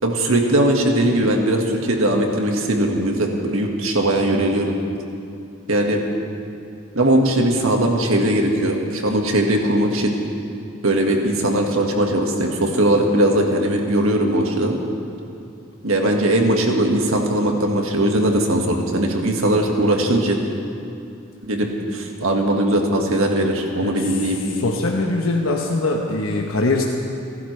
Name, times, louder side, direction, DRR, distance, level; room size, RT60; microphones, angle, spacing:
voice 1, 0.0-4.7 5.7-6.0 7.0-10.1 10.8-14.8 15.8-20.4 21.5-24.4, right 1 dB, 80° right, 2 dB, 1.8 m, -19 dB
voice 2, 23.8-24.2 24.5-26.8, left 2 dB, 85° left, 0 dB, 1.1 m, -22 dB
30.0 x 11.5 x 3.3 m, 2.6 s
head